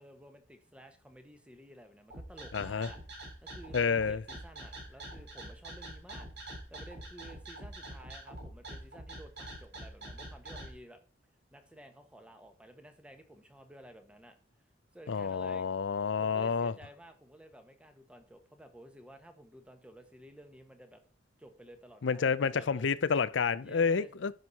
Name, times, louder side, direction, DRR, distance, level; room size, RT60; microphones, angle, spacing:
voice 1, 0.0-3.0 3.4-6.3 6.7-11.0 11.5-14.4 14.9-15.6 16.2-21.0 21.4-22.9 23.6-24.1, right 1 dB, 5° right, 1.2 m, -53 dB
sound 1, 2.1-10.7, right 1 dB, 60° right, 3.7 m, -45 dB
voice 2, 2.5-2.9 3.7-4.2 15.1-16.7 22.0-24.3, left 5 dB, 85° left, 0.5 m, -29 dB
11.0 x 6.3 x 4.1 m
head